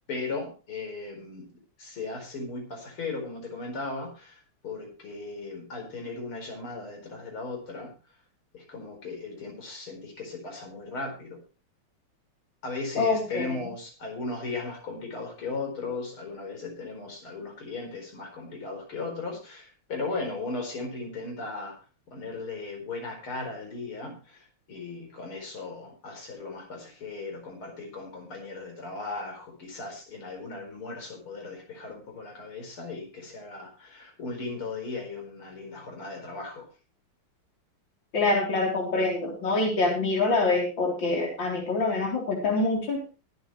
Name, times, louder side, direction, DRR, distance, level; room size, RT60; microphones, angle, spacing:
voice 1, 0.1-1.5 1.8-7.9 8.5-11.4 12.6-21.8 22.1-36.7, left 3 dB, 85° left, 2 dB, 5.4 m, -37 dB
voice 2, 13.0-13.5 38.1-43.0, left 3 dB, 60° left, 0 dB, 4.4 m, -25 dB
23.0 x 8.3 x 3.2 m, 0.31 s
omnidirectional pair, 2.3 m